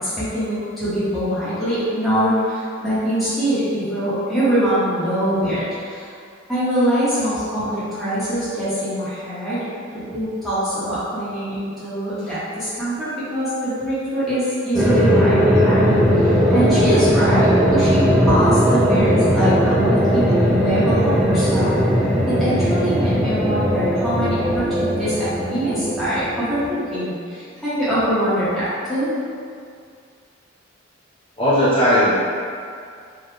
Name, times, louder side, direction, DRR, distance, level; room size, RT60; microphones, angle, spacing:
voice 1, 0.0-6.2 6.5-21.7 22.3-29.2, equal, ahead, -15 dB, 1.2 m, -23 dB
sound 1, 14.7-26.8, equal, 15° right, 0.6 m, -18 dB
voice 2, 31.4-32.1, equal, 25° left, -10 dB, 1.0 m, -16 dB
4.0 x 2.4 x 3.2 m, 2.3 s
head